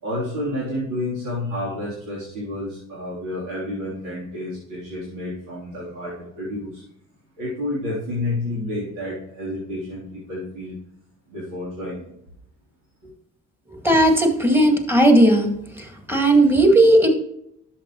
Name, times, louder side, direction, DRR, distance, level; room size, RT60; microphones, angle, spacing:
voice 1, 0.0-6.8 7.4-10.8 11.3-12.1 13.0-13.1, left 1 dB, 85° right, -8 dB, 3.5 m, -30 dB
voice 2, 13.8-15.5 15.8-17.1, right 1 dB, 5° right, 3 dB, 1.9 m, -16 dB
11.0 x 6.9 x 3.1 m, 0.72 s
cardioid pair, 90°, 30 cm